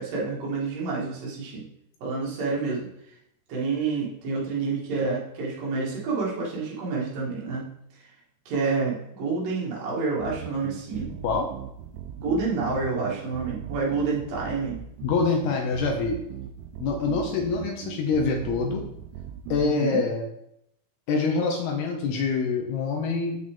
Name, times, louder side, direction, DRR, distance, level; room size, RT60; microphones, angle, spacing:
voice 1, 0.0-1.6 2.0-2.9 3.5-7.7 8.5-11.2 12.2-14.8 19.6-20.0, right 4 dB, 55° right, -5 dB, 3.2 m, -28 dB
sound 1, 10.2-19.7, right 9 dB, 85° right, 3.1 m, -39 dB
voice 2, 15.0-16.2 16.8-18.8 19.5-20.3 21.1-23.4, left 4 dB, 80° left, 1 dB, 2.2 m, -25 dB
7.7 x 6.5 x 3.7 m, 0.77 s
omnidirectional pair, 5.6 m